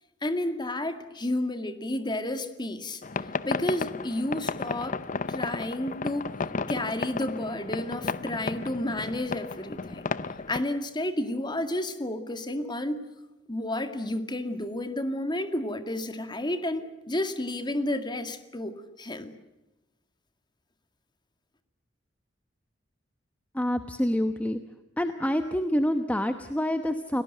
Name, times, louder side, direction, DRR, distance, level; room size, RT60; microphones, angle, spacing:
voice 1, 0.2-3.0 3.4-5.0 5.3-6.3 6.7-10.0 10.5-13.0 13.5-19.3, left 1 dB, 25° left, 9 dB, 2.0 m, -31 dB
sound 1, 3.0-10.6, left 4 dB, 45° left, 0.7 m, -33 dB
voice 2, 23.5-24.6 25.0-27.2, equal, 10° left, 8 dB, 1.0 m, -27 dB
29.5 x 18.5 x 7.8 m, 1.0 s
head